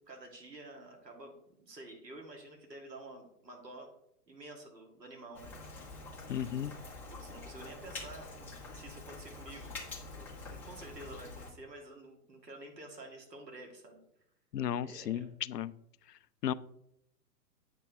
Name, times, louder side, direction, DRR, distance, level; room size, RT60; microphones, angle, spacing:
voice 1, 0.1-3.9 4.3-5.5 6.2-6.8 7.1-9.8 10.2-14.0 14.8-15.2, right 2 dB, 85° right, 2 dB, 2.1 m, -50 dB
Rain, 5.3-11.5, left 3 dB, 5° left, 0.5 m, -46 dB
voice 2, 6.3-6.7 14.5-15.7 16.4-16.5, left 10 dB, 75° left, 15 dB, 0.6 m, -34 dB
8.4 x 6.0 x 3.5 m, 0.76 s
figure-of-eight pair, 115°, 48 cm